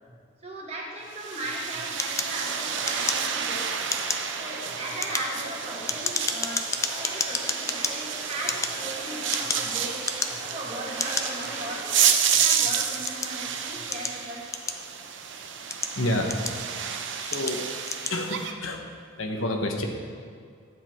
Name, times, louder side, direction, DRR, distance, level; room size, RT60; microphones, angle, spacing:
voice 1, 0.4-3.7 4.3-6.7 6.9-10.1 10.5-11.9 12.3-14.5, right 1 dB, 30° right, -3 dB, 1.9 m, -37 dB
sound 1, 1.1-18.5, right 8 dB, 60° right, 0.8 m, -30 dB
sound 2, 2.0-3.5 3.8-4.3 4.8-7.9 8.4-9.7 10.0-10.5 11.0-11.3 11.9-13.4 13.9-15.1 15.6-16.8 17.3-17.6 17.8-18.2, left 4 dB, 15° left, 0.5 m, -30 dB
sound 3, 2.5-12.3, right 1 dB, 10° right, 1.6 m, -42 dB
voice 2, 15.9-16.4 17.2-17.7 18.0-19.9, left 1 dB, 70° left, 2 dB, 1.2 m, -29 dB
12.5 x 8.4 x 4.5 m, 2.2 s
head